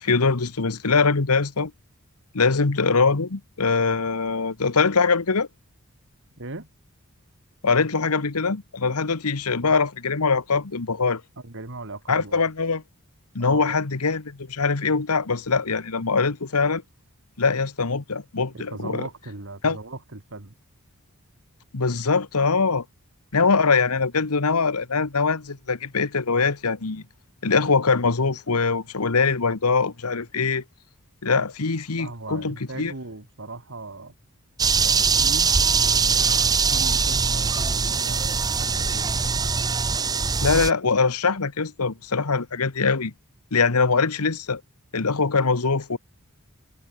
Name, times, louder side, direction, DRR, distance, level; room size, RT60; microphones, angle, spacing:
voice 1, 0.0-1.7 2.3-5.5 7.6-11.2 12.1-12.8 13.3-16.8 17.4-19.0 19.6-19.8 21.7-22.8 23.3-27.0 27.4-30.6 31.2-32.9 40.4-43.1 43.5-44.6 44.9-46.0, left 4 dB, 80° left, 1.2 m, -22 dB
voice 2, 6.4-6.7 11.4-12.4 13.4-13.8 18.5-20.5 32.0-34.1 34.8-39.1, right 2 dB, 60° right, 2.3 m, -38 dB
sound 1, 34.6-40.7, right 5 dB, 15° right, 0.5 m, -22 dB
head